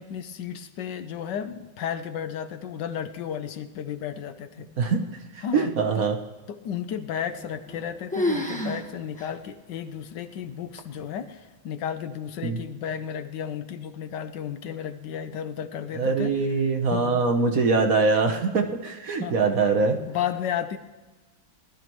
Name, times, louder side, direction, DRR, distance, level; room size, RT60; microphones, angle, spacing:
voice 1, 0.0-4.7 5.4-6.1 6.5-16.3 16.8-17.6 19.2-19.4 20.1-20.8, left 8 dB, 75° left, 10 dB, 1.3 m, -33 dB
voice 2, 5.5-6.2 12.4-12.6 15.9-20.0, right 4 dB, 55° right, 4 dB, 1.4 m, -23 dB
sound 1, 7.3-7.8 8.1-8.8 9.2-9.3 9.9-10.0 10.8-11.2, left 1 dB, 5° left, 1.0 m, -28 dB
19.5 x 12.5 x 3.1 m, 1.3 s
omnidirectional pair, 2.0 m